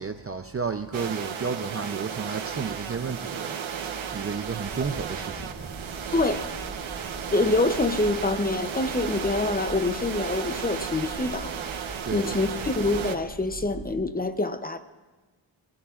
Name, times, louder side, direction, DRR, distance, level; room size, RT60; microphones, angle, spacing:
voice 1, 0.0-3.6 4.1-5.7 12.0-12.7, right 5 dB, 30° right, 7 dB, 0.5 m, -32 dB
sound 1, 0.9-13.2, right 7 dB, 70° right, 1.0 m, -34 dB
sound 2, 4.1-13.9, right 1 dB, ahead, 3.3 m, -42 dB
voice 2, 6.1-6.5 7.3-11.6 12.1-14.8, left 2 dB, 20° left, 9 dB, 0.6 m, -26 dB
29.0 x 17.0 x 2.4 m, 1.3 s
wide cardioid pair, 175°, 49 cm